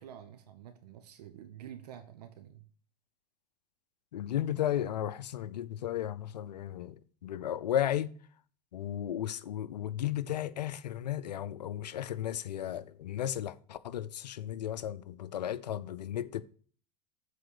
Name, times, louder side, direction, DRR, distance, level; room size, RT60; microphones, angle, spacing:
voice 1, 0.0-2.7, right 10 dB, 75° right, 1.0 m, -49 dB
voice 2, 4.1-8.1 8.7-16.4, left 11 dB, 80° left, 0.6 m, -34 dB
7.6 x 4.2 x 6.5 m
hypercardioid pair, 90°, 21 cm